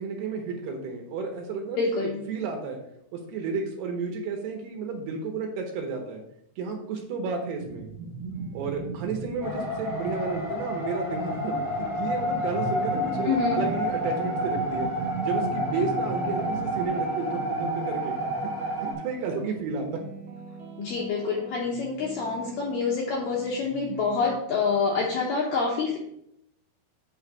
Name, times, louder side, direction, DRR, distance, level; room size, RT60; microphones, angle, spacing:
voice 1, 0.0-2.8 3.1-6.2 6.6-7.9 8.5-14.9 15.2-18.2 18.8-19.9, right 4 dB, 75° right, 2 dB, 2.8 m, -32 dB
voice 2, 1.8-2.2 13.2-13.6 20.8-26.0, left 4 dB, 75° left, -2 dB, 2.1 m, -27 dB
sound 1, 7.6-16.9, right 4 dB, 90° right, 2.9 m, -38 dB
sound 2, 8.3-8.9 9.3-24.3, right 4 dB, 55° right, 1.3 m, -43 dB
sound 3, 9.4-18.9, equal, 40° left, 0.6 m, -29 dB
8.4 x 3.2 x 5.9 m, 0.74 s
omnidirectional pair, 5.0 m